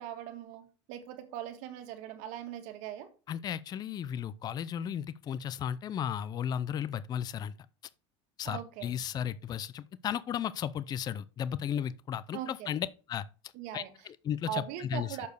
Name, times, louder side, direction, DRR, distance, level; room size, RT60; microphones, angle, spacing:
voice 1, 0.0-3.1 8.4-9.0 12.3-12.7 13.5-13.9 14.5-15.3, right 10 dB, 65° right, 1.7 m, -40 dB
voice 2, 3.3-7.5 8.4-13.2 13.7-15.2, left 9 dB, 30° left, 0.5 m, -35 dB
6.9 x 5.0 x 6.6 m
supercardioid pair, 130°, 14 cm